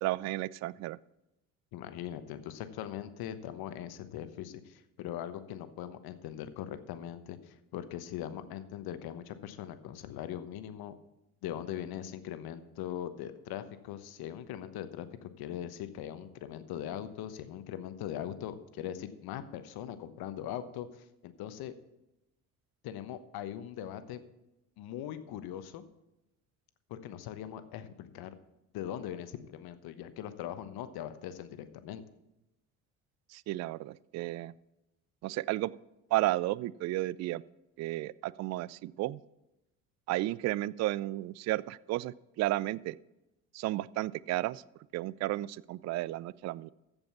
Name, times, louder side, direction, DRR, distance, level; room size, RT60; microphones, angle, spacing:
voice 1, 0.0-1.0 33.3-34.5 35.2-35.7 36.1-37.4 37.8-39.2 40.1-43.0 43.5-44.6 44.9-46.7, right 17 dB, 40° right, 21 dB, 0.4 m, -33 dB
voice 2, 1.7-10.9 11.4-21.7 22.8-24.2 24.8-25.8 26.9-28.3 28.7-32.0, left 10 dB, 60° left, 11 dB, 1.1 m, -41 dB
14.5 x 5.4 x 7.0 m, 0.92 s
hypercardioid pair, 60°, 42 cm